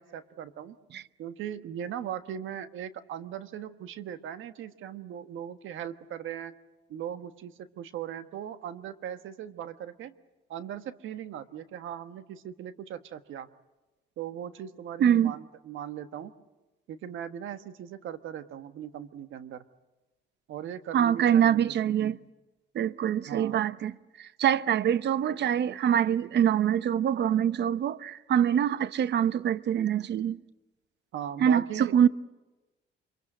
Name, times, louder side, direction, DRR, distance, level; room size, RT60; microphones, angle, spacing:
voice 1, 0.0-0.8 1.2-6.5 6.9-10.1 10.5-13.5 14.2-16.3 16.9-19.6 20.5-22.2 23.3-23.6 31.1-31.9, right 9 dB, 80° right, 1.4 m, -39 dB
voice 2, 15.0-15.3 20.9-22.2 22.7-30.4 31.4-32.1, right 9 dB, 60° right, 0.8 m, -24 dB
25.5 x 23.5 x 7.8 m
cardioid pair, 90°, 20 cm